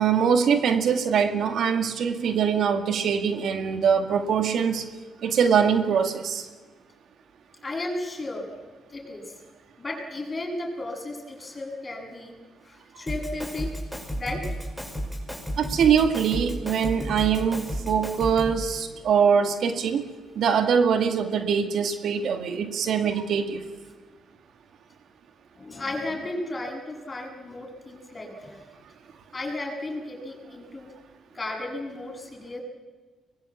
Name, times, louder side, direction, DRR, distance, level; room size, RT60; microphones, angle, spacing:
voice 1, 0.0-4.8 5.2-6.5 15.6-20.0 20.4-23.6, right 7 dB, 65° right, 7 dB, 2.2 m, -23 dB
voice 2, 7.6-8.5 8.9-9.2 9.8-12.3 12.6-13.7 14.2-14.4 25.6-28.6 29.3-30.9 31.3-32.6, left 2 dB, 25° left, 0 dB, 7.9 m, -34 dB
Drum kit, 13.1-18.7, equal, 5° right, 6.0 m, -33 dB
24.0 x 21.0 x 8.5 m, 1.3 s
cardioid pair, 90°, 0 cm